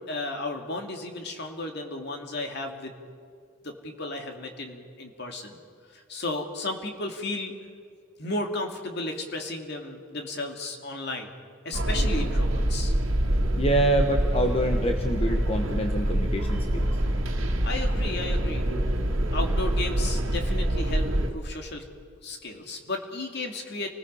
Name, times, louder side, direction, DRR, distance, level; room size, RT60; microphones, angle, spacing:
voice 1, 0.1-2.9 3.6-5.6 5.9-7.5 8.2-11.3 11.6-13.0 17.6-18.7 19.3-21.8 22.2-23.9, left 2 dB, 55° left, 3 dB, 2.5 m, -34 dB
sound 1, 11.7-21.3, right 1 dB, 85° right, 1.9 m, -25 dB
voice 2, 13.6-16.9, right 1 dB, 30° left, 4 dB, 1.2 m, -26 dB
29.0 x 20.0 x 5.6 m, 2.2 s
head